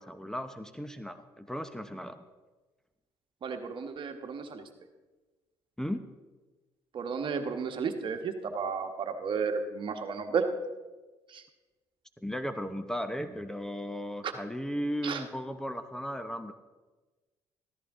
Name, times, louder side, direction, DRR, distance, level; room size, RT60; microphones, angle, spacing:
voice 1, 0.0-2.2 5.8-6.0 12.2-16.5, equal, 5° left, 9 dB, 0.8 m, -36 dB
voice 2, 3.4-4.6 6.9-10.5 11.3-11.4 14.2-14.3 15.0-15.2, right 5 dB, 55° right, 6 dB, 1.4 m, -33 dB
14.0 x 13.5 x 3.7 m, 1.2 s
supercardioid pair, 80°, 10 cm